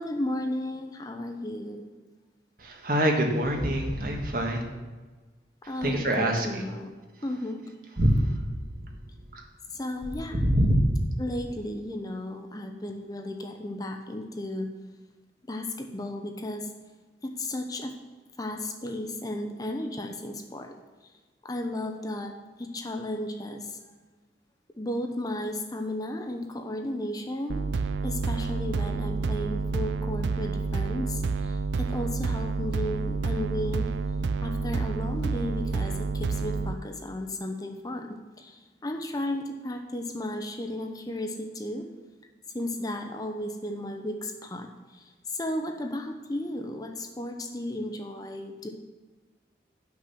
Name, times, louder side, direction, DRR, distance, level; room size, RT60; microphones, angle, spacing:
voice 1, 0.0-1.8 5.7-6.9 7.2-7.6 9.8-10.4 11.2-14.7 15.5-16.6 17.2-17.9 18.4-20.7 21.4-22.3 22.6-23.6 24.8-27.6 28.0-31.2 31.8-33.9 34.4-35.9 36.2-38.5 38.8-41.9 42.5-44.7 45.4-48.7, left 1 dB, 20° left, 4 dB, 0.7 m, -34 dB
voice 2, 2.6-4.6 5.8-6.6 8.0-8.8 9.3-9.4 10.3-10.9, right 1 dB, 50° right, 2 dB, 1.4 m, -25 dB
sound 1, 27.5-36.7, right 4 dB, 85° right, 0.4 m, -29 dB
10.0 x 6.1 x 5.8 m, 1.3 s
head